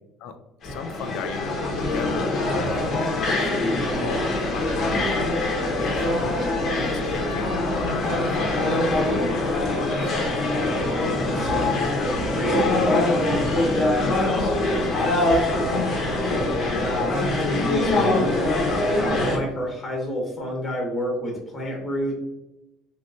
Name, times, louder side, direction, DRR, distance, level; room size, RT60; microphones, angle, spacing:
voice 1, 0.6-3.5 3.9-5.4 5.7-6.4 6.7-10.3, left 6 dB, 70° left, 9 dB, 0.4 m, -36 dB
sound 1, 0.6-19.4, left 2 dB, 45° left, 0.8 m, -23 dB
voice 2, 10.9-22.1, equal, 25° left, -1 dB, 0.9 m, -31 dB
3.1 x 3.0 x 2.6 m, 0.98 s
cardioid pair, 130°, 0 cm